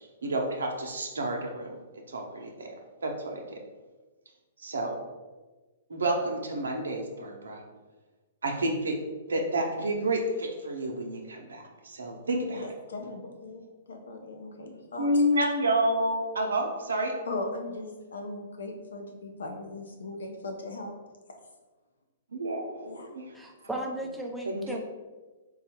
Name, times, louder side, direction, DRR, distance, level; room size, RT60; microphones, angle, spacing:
voice 1, 0.2-1.7 2.1-2.7 3.0-3.6 4.6-5.0 5.9-7.6 8.4-9.0 9.3-12.7 15.0-17.1 22.3-23.3 23.6-23.8 24.4-24.8, right 1 dB, 85° right, 2 dB, 0.7 m, -29 dB
voice 2, 12.5-15.2 17.3-20.9 21.3-21.4 22.9-23.1, left 2 dB, 80° left, 3 dB, 0.7 m, -38 dB
voice 3, 23.3-24.8, right 1 dB, 5° right, 0 dB, 0.6 m, -35 dB
3.9 x 2.4 x 4.3 m, 1.3 s
hypercardioid pair, 125°, 0 cm